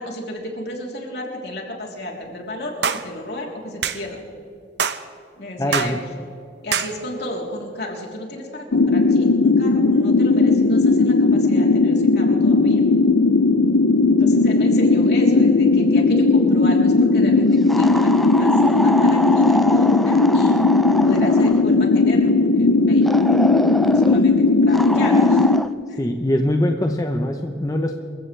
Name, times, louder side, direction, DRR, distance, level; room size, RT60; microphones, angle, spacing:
voice 1, 0.0-4.2 5.4-6.0 6.6-12.8 14.2-20.6 21.0-25.5 25.9-26.0, equal, 60° left, -1 dB, 3.5 m, -32 dB
sound 1, 2.8-3.1 3.8-4.0 4.8-5.0 5.7-6.0 6.7-6.9, right 7 dB, 65° right, 0.8 m, -23 dB
voice 2, 5.6-6.0 26.0-28.0, left 1 dB, 20° left, 4 dB, 0.8 m, -22 dB
sound 2, 8.7-25.6, left 3 dB, 90° left, 0.6 m, -16 dB
sound 3, 17.7-21.7 23.1-24.2 24.7-25.7, equal, ahead, 0.4 m, -26 dB
27.5 x 15.5 x 3.4 m, 2.5 s
head